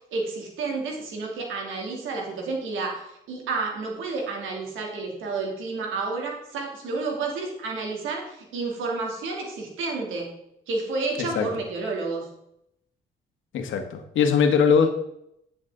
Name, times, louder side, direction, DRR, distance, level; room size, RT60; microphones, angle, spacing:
voice 1, 0.1-10.3 10.7-12.2, right 3 dB, 85° right, 0 dB, 3.0 m, -30 dB
voice 2, 13.5-14.9, left 6 dB, 75° left, 5 dB, 1.6 m, -21 dB
10.0 x 7.6 x 3.9 m, 0.77 s
cardioid pair, 90°, 20 cm